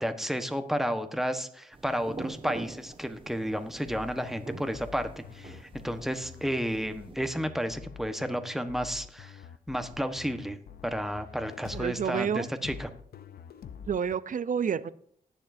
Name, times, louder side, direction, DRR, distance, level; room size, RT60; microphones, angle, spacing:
voice 1, 0.0-9.4 9.7-10.6 10.8-12.9, equal, ahead, 8 dB, 1.2 m, -32 dB
sound 1, 1.7-7.2, right 3 dB, 35° right, 1.6 m, -45 dB
sound 2, 3.8-14.2, left 7 dB, 90° left, 0.6 m, -47 dB
voice 2, 11.7-12.5 13.9-14.9, right 7 dB, 60° right, 16 dB, 0.6 m, -29 dB
19.5 x 7.2 x 2.7 m, 0.63 s
cardioid pair, 70°, 15 cm